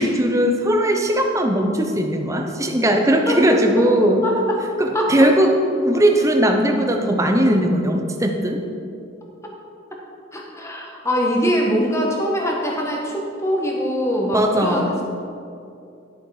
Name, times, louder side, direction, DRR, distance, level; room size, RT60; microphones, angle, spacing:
voice 1, 0.0-4.2 4.8-8.6 14.3-14.9, right 1 dB, 15° right, 3 dB, 0.8 m, -18 dB
voice 2, 4.2-4.6 4.9-5.1 10.3-15.0, equal, 15° left, -1 dB, 1.4 m, -22 dB
11.5 x 6.8 x 4.9 m, 2.5 s
head